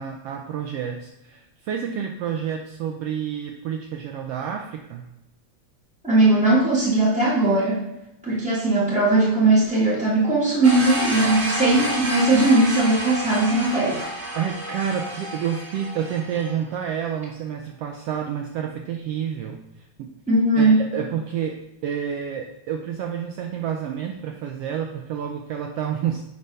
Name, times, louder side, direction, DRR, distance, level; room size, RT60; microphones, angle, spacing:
voice 1, 0.0-5.1 14.3-20.1 20.6-26.2, right 8 dB, 80° right, 3 dB, 1.4 m, -29 dB
voice 2, 6.0-7.8 8.2-14.0 20.3-20.8, right 2 dB, 5° right, -7 dB, 0.7 m, -19 dB
sound 1, 10.6-16.5, right 1 dB, 35° right, 1.6 m, -29 dB
9.2 x 3.4 x 5.4 m, 0.90 s
omnidirectional pair, 3.3 m